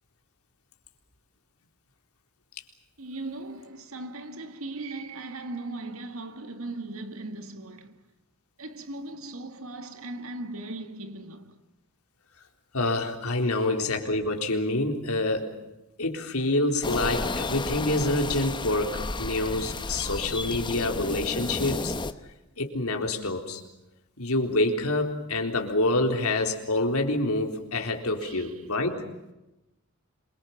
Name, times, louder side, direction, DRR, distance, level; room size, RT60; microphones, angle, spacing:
voice 1, 3.0-8.0 8.6-11.6 13.4-13.6 28.2-28.5, right 2 dB, 75° right, 2.0 m, -38 dB
voice 2, 12.7-15.5 16.0-21.9 22.6-23.6 24.2-29.0, left 2 dB, 85° left, 3.9 m, -27 dB
sound 1, 16.8-22.1, left 2 dB, 20° left, 1.0 m, -32 dB
27.0 x 24.0 x 7.2 m
head